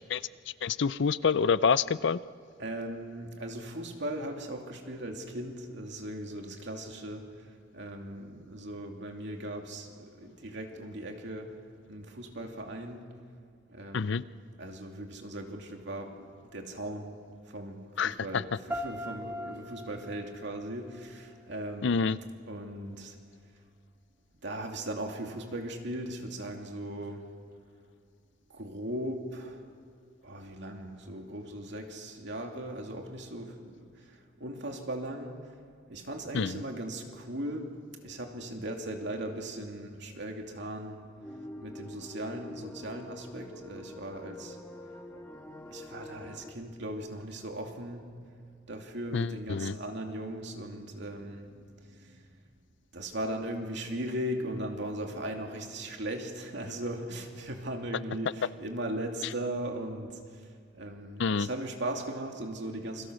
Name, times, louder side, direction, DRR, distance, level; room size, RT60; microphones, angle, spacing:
voice 1, 0.6-2.2 13.9-14.2 18.0-18.4 21.8-22.2 36.3-36.6 49.1-49.8 61.2-61.5, left 5 dB, 65° left, 17 dB, 0.5 m, -27 dB
voice 2, 2.6-7.3 7.7-11.6 11.9-13.1 13.7-14.2 14.6-17.1 17.5-22.2 22.5-23.2 24.4-27.2 28.5-29.7 30.2-35.4 35.9-37.7 38.0-41.0 41.6-44.6 45.7-48.1 48.7-52.3 52.9-60.5 60.8-63.1, right 1 dB, 65° right, 3 dB, 2.7 m, -38 dB
sound 1, 18.7-21.7, equal, 10° right, 2.0 m, -41 dB
sound 2, 41.2-46.5, left 1 dB, 10° left, 1.6 m, -45 dB
28.5 x 23.0 x 6.4 m, 2.2 s
head